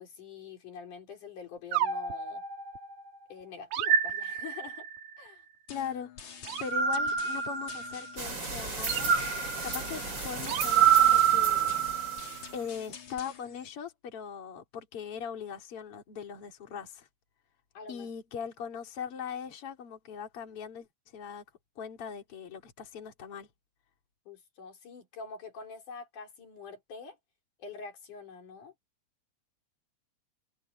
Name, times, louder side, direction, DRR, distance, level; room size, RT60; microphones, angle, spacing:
voice 1, 0.0-2.4 3.3-4.9 5.2-5.4 17.7-18.1 24.3-27.2 27.6-28.7, left 5 dB, 85° left, 5.1 m, -45 dB
sound 1, 1.7-3.1 3.7-5.0 6.5-8.2 8.9-12.4, right 9 dB, 85° right, 3.0 m, -27 dB
sound 2, 5.7-13.7, left 7 dB, 70° left, 4.3 m, -48 dB
voice 2, 5.7-9.1 9.6-11.8 12.5-17.1 17.9-21.4 21.8-23.5, left 7 dB, 50° left, 3.7 m, -40 dB
sound 3, 8.2-12.9, right 3 dB, 35° right, 5.2 m, -37 dB
omnidirectional pair, 3.5 m